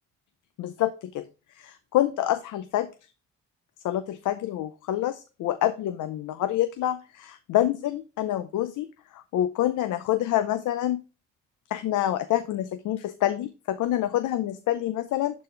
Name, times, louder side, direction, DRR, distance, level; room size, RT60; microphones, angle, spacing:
voice 1, 0.6-1.2 1.6-2.9 3.8-8.9 9.1-11.0 11.7-15.4, left 13 dB, 80° left, 10 dB, 0.7 m, -27 dB
11.5 x 4.2 x 3.2 m, 0.30 s
cardioid pair, 90°, 30 cm